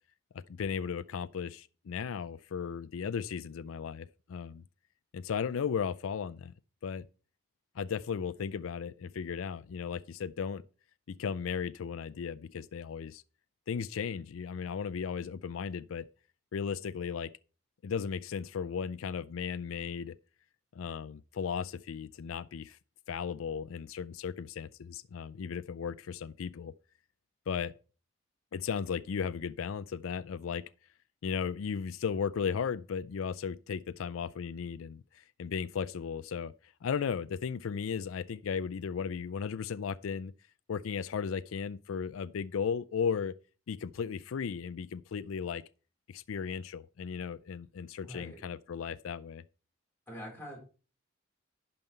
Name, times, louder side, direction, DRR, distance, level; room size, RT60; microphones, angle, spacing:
voice 1, 0.3-4.6 5.1-6.5 6.8-7.0 7.8-10.6 11.1-13.2 13.7-16.1 16.5-17.3 17.8-20.1 20.7-22.8 23.1-26.7 27.5-27.7 28.5-30.6 31.2-40.3 40.7-43.3 43.7-45.6 46.1-49.4, left 6 dB, 85° left, 0.4 m, -36 dB
voice 2, 48.0-48.4 50.1-50.6, equal, 10° left, 4.2 m, -44 dB
11.0 x 5.5 x 4.4 m
head